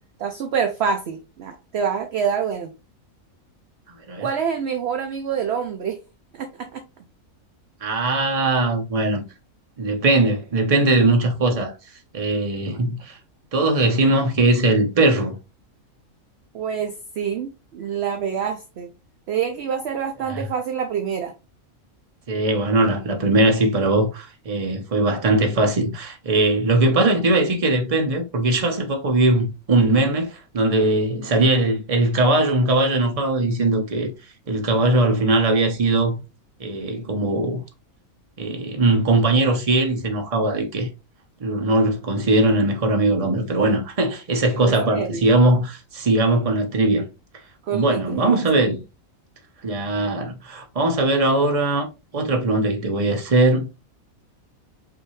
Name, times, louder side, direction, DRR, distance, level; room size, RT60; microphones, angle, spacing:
voice 1, 0.2-2.7 4.2-6.0 6.3-6.8 16.5-18.9 19.3-21.3 44.6-45.2 47.7-48.6, right 7 dB, 60° right, 0.7 m, -26 dB
voice 2, 7.8-9.2 9.8-11.7 12.1-13.2 13.5-15.3 20.3-20.5 22.3-34.1 34.5-36.2 36.6-37.6 38.4-40.9 41.4-47.0 47.7-48.8 49.6-51.9 52.1-53.7, right 2 dB, 30° right, 0.8 m, -20 dB
5.4 x 2.8 x 3.0 m
omnidirectional pair, 1.4 m